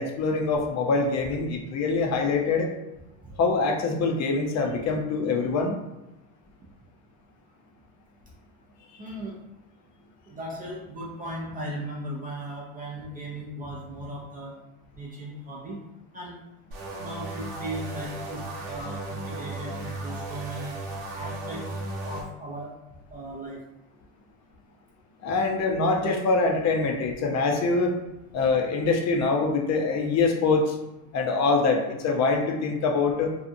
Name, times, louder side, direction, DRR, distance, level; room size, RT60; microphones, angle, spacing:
voice 1, 0.0-2.7 3.4-5.7 25.2-28.0 28.3-30.8 31.1-33.4, left 3 dB, 35° left, 2 dB, 0.5 m, -24 dB
voice 2, 9.0-9.4 10.3-14.6 15.0-15.8 16.1-16.4 17.0-20.7 21.1-21.8 22.0-22.7 23.1-23.6, right 1 dB, 20° right, -3 dB, 0.4 m, -37 dB
sound 1, 16.7-22.2, right 2 dB, 70° right, 1.0 m, -35 dB
2.7 x 2.3 x 2.6 m, 0.97 s
supercardioid pair, 105°, 45 cm